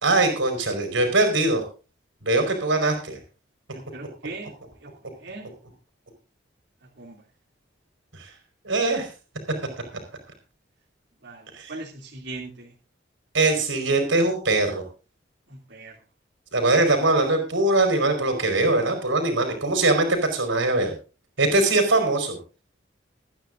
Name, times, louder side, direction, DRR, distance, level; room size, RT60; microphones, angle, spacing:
voice 1, 0.0-1.6 2.2-3.2 8.2-8.3 8.6-9.1 11.5-11.7 13.3-14.8 16.5-20.9 21.4-22.4, right 2 dB, 85° right, 5 dB, 4.8 m, -22 dB
voice 2, 3.7-4.5 5.2-5.5 7.0-7.2 11.2-12.7 15.5-15.9, right 3 dB, 65° right, -3 dB, 2.9 m, -39 dB
25.0 x 9.8 x 2.6 m, 0.34 s
head